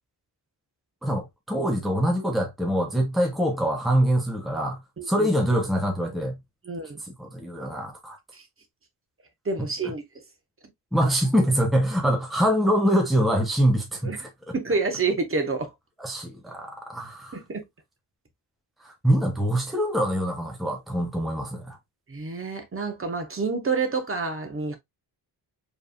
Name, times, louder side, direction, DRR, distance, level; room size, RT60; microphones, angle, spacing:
voice 1, 1.0-4.8 5.1-6.4 7.0-8.2 10.9-14.5 16.0-17.4 18.8-21.8, equal, ahead, 1.0 m, -24 dB
voice 2, 5.0-5.3 6.6-7.0 8.3-8.4 9.4-10.0 14.0-14.2 14.5-15.7 17.3-17.6 22.1-24.8, right 4 dB, 30° right, 1.2 m, -28 dB
4.7 x 3.5 x 2.5 m
wide cardioid pair, 125°, 42 cm